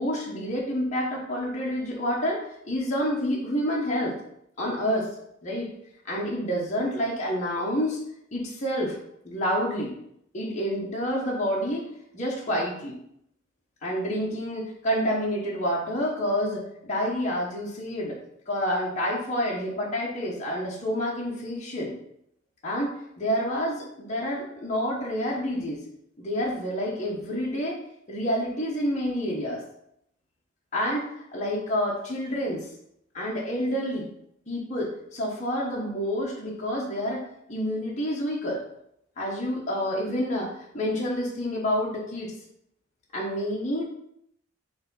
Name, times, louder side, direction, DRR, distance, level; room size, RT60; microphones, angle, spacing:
voice 1, 0.0-4.2 4.6-5.1 5.4-5.7 6.0-8.0 8.3-9.0 9.2-9.9 10.3-11.9 12.1-13.0 13.8-18.2 18.5-22.0 22.6-22.9 23.2-25.8 26.2-27.8 28.1-29.6 30.7-32.7 33.1-34.1 34.5-38.6 39.2-42.3 43.1-43.8, equal, 35° left, -4 dB, 1.2 m, -28 dB
5.4 x 3.4 x 5.6 m, 0.74 s
head